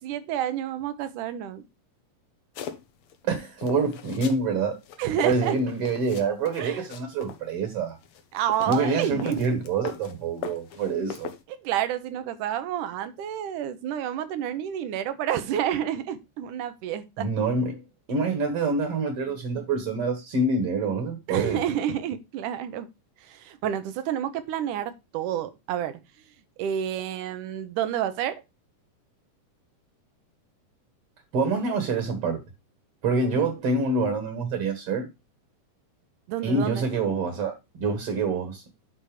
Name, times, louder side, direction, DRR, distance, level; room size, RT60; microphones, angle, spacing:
voice 1, 0.0-1.6 5.0-5.6 6.6-6.9 8.3-9.6 11.0-11.2 11.5-17.3 21.3-22.9 23.2-26.0 26.6-28.4 36.3-36.9, right 10 dB, 75° right, 2.4 m, -29 dB
sound 1, 2.5-3.2 3.6-4.4 4.8-7.4 8.0-10.1 10.4-11.4, left 8 dB, 80° left, 1.2 m, -39 dB
voice 2, 3.2-4.8 5.2-8.0 8.7-11.3 17.2-17.8 18.1-21.6 31.3-32.4 33.0-35.1 36.4-38.6, right 3 dB, 50° right, 2.3 m, -26 dB
10.5 x 4.2 x 4.9 m
omnidirectional pair, 3.8 m